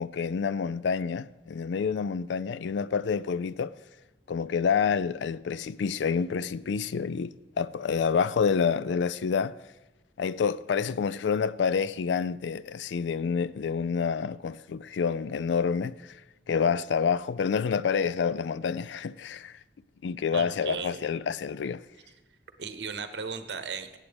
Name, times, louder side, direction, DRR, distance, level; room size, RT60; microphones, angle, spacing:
voice 1, 0.0-3.7 4.3-9.5 10.2-15.9 16.5-19.5 20.0-21.8, left 6 dB, 80° left, 0.4 m, -28 dB
voice 2, 20.3-21.0 22.6-24.0, right 5 dB, 70° right, 0.9 m, -36 dB
18.5 x 8.2 x 3.4 m
head